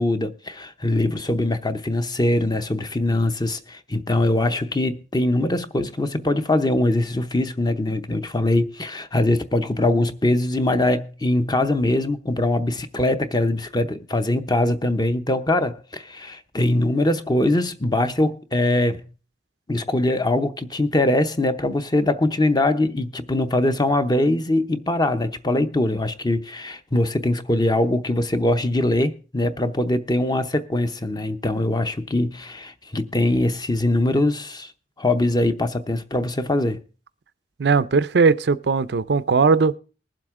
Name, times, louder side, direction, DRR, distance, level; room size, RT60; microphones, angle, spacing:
voice 1, 0.0-19.1 19.7-34.7 35.0-36.8, left 1 dB, 25° left, 0.7 m, -22 dB
voice 2, 37.6-39.8, right 4 dB, 65° right, 0.5 m, -18 dB
20.5 x 7.6 x 3.6 m
head